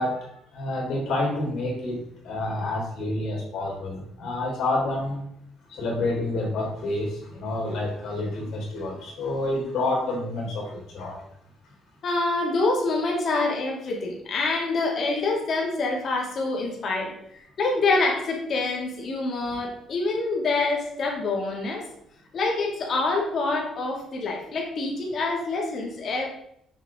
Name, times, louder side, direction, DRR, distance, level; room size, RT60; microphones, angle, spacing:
voice 1, 0.0-5.2 5.7-11.2, left 2 dB, 65° left, -1 dB, 3.0 m, -28 dB
voice 2, 12.0-21.8 22.3-26.3, left 3 dB, 45° left, -1 dB, 2.0 m, -26 dB
6.6 x 6.1 x 3.6 m, 0.74 s
cardioid pair, 140°, 0 cm